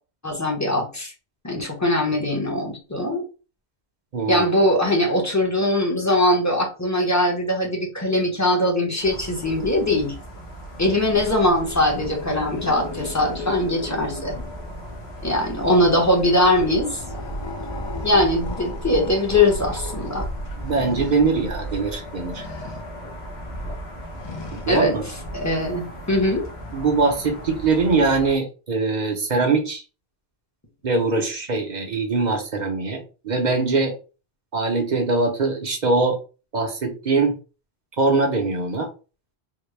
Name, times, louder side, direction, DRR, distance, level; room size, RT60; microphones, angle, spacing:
voice 1, 0.2-1.1 1.4-3.2 4.3-10.1 10.8-14.4 15.2-17.0 18.0-20.3 24.7-25.0 25.3-26.4, left 1 dB, 20° left, 1 dB, 0.8 m, -21 dB
voice 2, 4.1-4.4 20.6-22.4 24.5-25.0 26.7-29.8 30.8-33.9 34.5-36.2 36.5-37.4 38.0-38.9, right 3 dB, 50° right, 4 dB, 0.7 m, -22 dB
sound 1, 9.0-28.3, right 1 dB, 75° left, 1.4 m, -35 dB
sound 2, 11.1-14.9 15.2-21.2 22.3-22.9 24.2-24.7, left 3 dB, 40° left, 0.4 m, -37 dB
3.7 x 2.1 x 3.2 m, 0.34 s
omnidirectional pair, 1.1 m